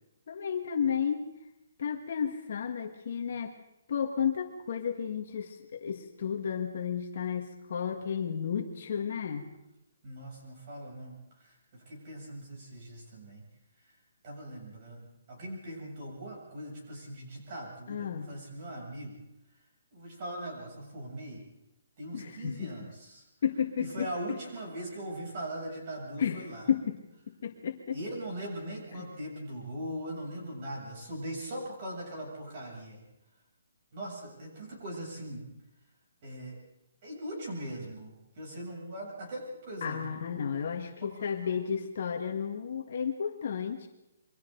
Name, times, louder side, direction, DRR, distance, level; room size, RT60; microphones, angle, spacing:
voice 1, 0.3-1.3 1.8-3.5 3.9-9.5 17.9-18.3 22.1-22.7 23.4-24.1 26.2-26.4 26.7-27.0 27.3-28.0 29.0-29.1 39.8-43.9, left 7 dB, 45° left, 3 dB, 1.7 m, -32 dB
voice 2, 10.0-13.4 14.2-19.2 19.9-21.4 22.0-23.2 23.8-26.7 27.9-33.0 33.9-35.5 36.2-36.6 37.0-40.2 41.0-41.7, right 1 dB, 30° right, -2 dB, 7.8 m, -40 dB
28.5 x 23.5 x 4.0 m, 0.91 s
hypercardioid pair, 175°, 0 cm